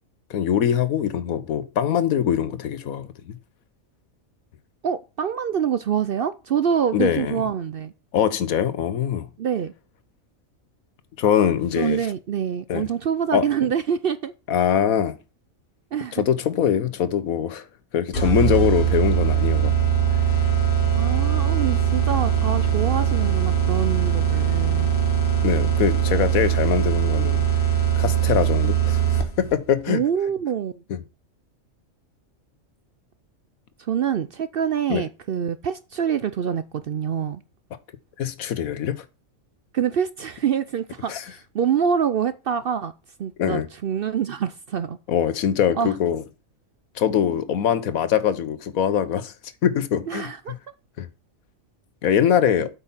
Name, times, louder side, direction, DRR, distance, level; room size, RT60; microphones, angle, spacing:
voice 1, 0.3-3.3 6.9-7.4 8.1-9.3 11.2-12.1 12.7-12.9 13.3-13.5 14.5-15.2 16.1-17.6 17.9-19.7 20.8-20.9 25.4-27.4 28.0-29.0 29.4-30.0 30.9-31.0 34.9-35.1 38.2-39.0 41.1-41.2 43.4-43.7 45.1-46.2 47.0-49.3 49.6-50.3 51.0-51.1 52.0-52.7, left 9 dB, 90° left, 1.3 m, -22 dB
voice 2, 4.8-7.9 9.4-9.7 11.8-14.3 15.9-16.2 20.9-24.9 29.9-30.8 33.8-37.4 39.7-42.9 43.2-45.0 45.8-45.9 50.1-50.6, right 8 dB, 60° right, 0.6 m, -25 dB
sound 1, 18.1-29.5, right 9 dB, 40° left, 1.6 m, -21 dB
8.3 x 5.5 x 5.6 m
omnidirectional pair, 1.4 m